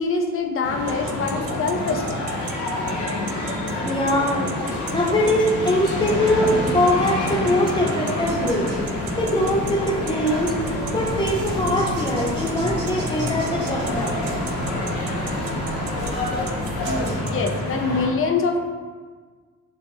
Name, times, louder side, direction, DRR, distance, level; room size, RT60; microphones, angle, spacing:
voice 1, 0.0-2.0 7.7-7.9 16.8-18.6, left 4 dB, 45° left, 4 dB, 0.6 m, -24 dB
sound 1, 0.6-18.1, left 1 dB, 80° left, 1.4 m, -27 dB
sound 2, 0.9-17.5, right 9 dB, 55° right, 0.4 m, -36 dB
voice 2, 3.8-4.4 4.9-8.7 9.2-10.6 10.9-14.3, left 1 dB, 15° left, -3 dB, 0.9 m, -22 dB
dog toy, 8.2-17.2, right 1 dB, 85° right, 1.2 m, -35 dB
6.0 x 2.5 x 2.8 m, 1.5 s
cardioid pair, 105°, 30 cm